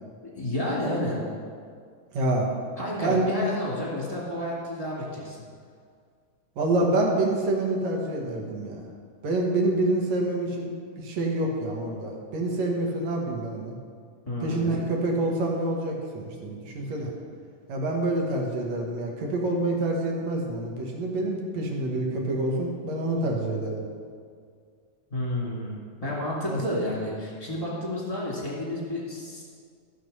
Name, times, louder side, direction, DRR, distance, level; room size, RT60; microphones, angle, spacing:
voice 1, 0.4-1.2 2.8-5.4 14.3-14.8 25.1-29.4, left 1 dB, 15° left, -5 dB, 2.0 m, -30 dB
voice 2, 2.1-2.5 3.0-3.3 6.6-8.9 9.2-13.7 14.4-17.1 17.7-23.8 26.5-26.6, right 2 dB, 60° right, 0 dB, 2.5 m, -27 dB
14.5 x 6.7 x 5.5 m, 2.1 s
omnidirectional pair, 3.8 m